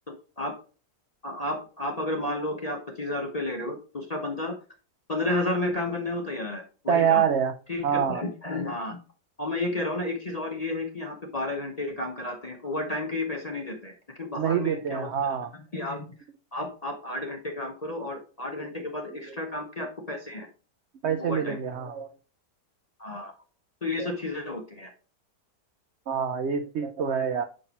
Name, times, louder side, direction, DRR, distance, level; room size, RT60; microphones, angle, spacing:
voice 1, 0.1-0.5 1.2-4.6 5.1-7.3 7.7-9.0 9.4-13.9 14.2-16.1 16.5-20.5 21.2-21.6 23.0-23.3 23.8-24.9, left 2 dB, 35° left, 2 dB, 0.7 m, -32 dB
voice 2, 6.9-7.5 7.8-8.2 14.3-15.5 19.1-19.4 21.0-22.1 24.0-24.1 26.1-27.4, right 8 dB, 75° right, 7 dB, 0.6 m, -26 dB
6.5 x 5.5 x 2.8 m, 0.34 s
omnidirectional pair, 1.8 m